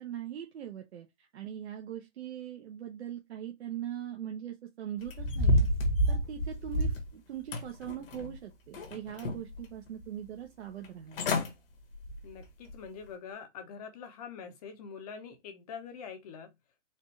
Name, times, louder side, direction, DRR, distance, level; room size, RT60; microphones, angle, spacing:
voice 1, 0.0-5.7 6.1-11.2, right 10 dB, 60° right, 0.8 m, -41 dB
sound 1, 5.1-7.1 7.5-8.3 8.7-9.6 10.0-10.1 10.8-10.9 11.1-11.5 11.9-12.2 12.7-12.8, left 1 dB, 50° left, 1.2 m, -28 dB
voice 2, 12.2-16.5, left 6 dB, 35° left, 0.8 m, -44 dB
4.2 x 2.5 x 3.2 m
hypercardioid pair, 155°, 36 cm